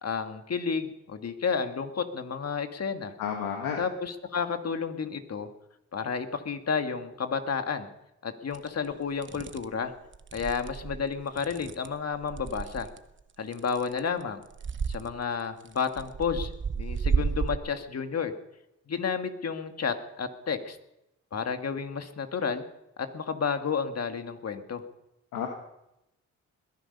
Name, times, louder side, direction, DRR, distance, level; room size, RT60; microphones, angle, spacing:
voice 1, 0.0-3.1 3.8-5.5 5.9-7.9 8.2-9.9 10.3-12.9 13.4-14.4 14.9-18.3 18.9-20.8 21.3-22.6 23.0-24.8, left 6 dB, 55° left, 7 dB, 1.8 m, -31 dB
voice 2, 3.2-3.8 25.3-25.5, left 8 dB, 85° left, 2 dB, 1.6 m, -31 dB
sound 1, 8.5-8.7 9.2-9.7 10.1-13.0 13.5-14.2 14.5-15.1 15.7-17.6, right 6 dB, 40° right, 1.0 m, -32 dB
21.0 x 10.5 x 5.5 m, 0.87 s
supercardioid pair, 55°, 31 cm